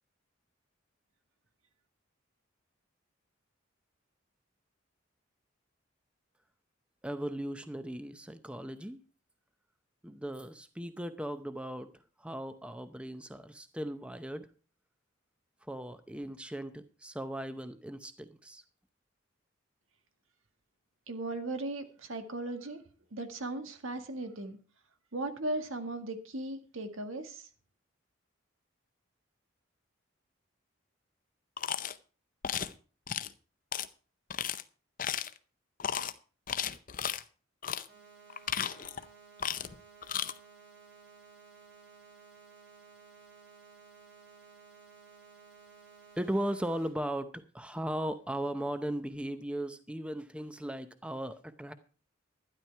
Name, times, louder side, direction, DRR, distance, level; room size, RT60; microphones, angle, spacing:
voice 1, 7.0-9.0 10.0-11.9 12.2-14.5 15.7-18.6 46.2-51.7, right 1 dB, 5° right, 10 dB, 0.7 m, -37 dB
voice 2, 21.1-22.8 23.1-24.6 25.1-27.5, right 2 dB, 90° right, 7 dB, 1.8 m, -37 dB
sound 1, 31.6-32.0 32.4-32.7 33.1-33.3 33.7-33.9 34.3-34.6 35.0-35.4 35.8-36.1 36.5-37.2 37.6-37.9 38.3-39.0 39.4-39.8 40.0-40.3, left 8 dB, 45° left, 0.6 m, -34 dB
sound 2, 37.9-46.9, right 5 dB, 60° right, 5.5 m, -56 dB
12.5 x 10.5 x 4.5 m, 0.37 s
head